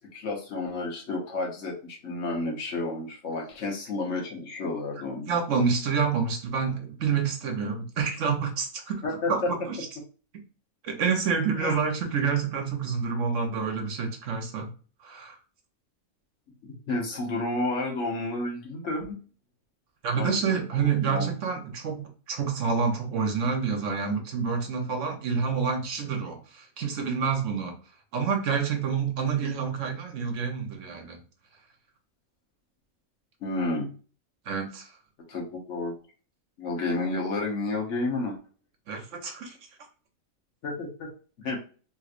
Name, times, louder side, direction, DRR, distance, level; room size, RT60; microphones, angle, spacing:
voice 1, 0.0-5.4 9.0-9.5 11.6-11.8 16.6-19.2 20.2-20.6 21.0-21.3 33.4-33.9 35.3-35.9 36.6-38.4 40.6-41.1 41.4-41.6, left 2 dB, 60° left, 0 dB, 1.3 m, -31 dB
voice 2, 5.3-9.0 9.3-9.9 10.8-14.7 15.0-15.4 20.0-27.7 28.1-31.2 34.5-34.9 38.9-39.5, right 6 dB, 65° right, 4 dB, 1.1 m, -28 dB
3.3 x 3.0 x 2.4 m, 0.38 s
omnidirectional pair, 1.5 m